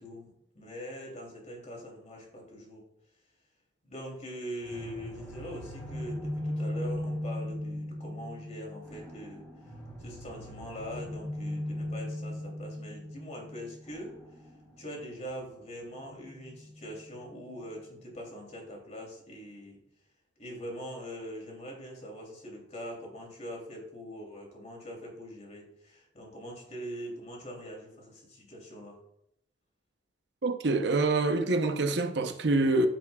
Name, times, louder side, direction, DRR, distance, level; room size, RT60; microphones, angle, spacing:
voice 1, 0.0-2.8 3.8-9.4 10.0-14.1 14.8-19.8 20.4-29.0, equal, 35° left, 2.9 m, -43 dB
sound 1, 4.6-17.4, left 1 dB, 5° left, 2.9 m, -39 dB
voice 2, 30.4-32.9, right 2 dB, 60° right, 0.7 m, -26 dB
14.0 x 5.9 x 2.3 m
head